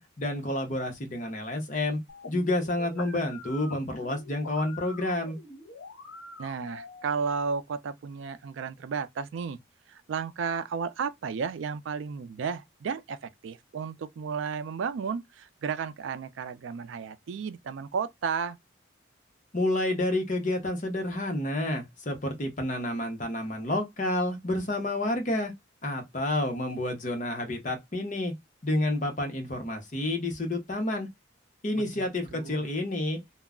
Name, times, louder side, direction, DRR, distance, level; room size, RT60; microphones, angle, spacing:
voice 1, 0.0-2.0 2.3-5.4 19.5-25.5 25.8-28.3 28.6-31.1 31.6-33.2, left 1 dB, 40° left, 0.7 m, -29 dB
sound 1, 2.1-7.1, left 3 dB, 85° left, 0.7 m, -45 dB
voice 2, 6.4-9.6 9.9-18.6 31.7-32.1 32.3-32.6, right 6 dB, 70° right, 0.3 m, -33 dB
2.2 x 2.0 x 3.5 m
head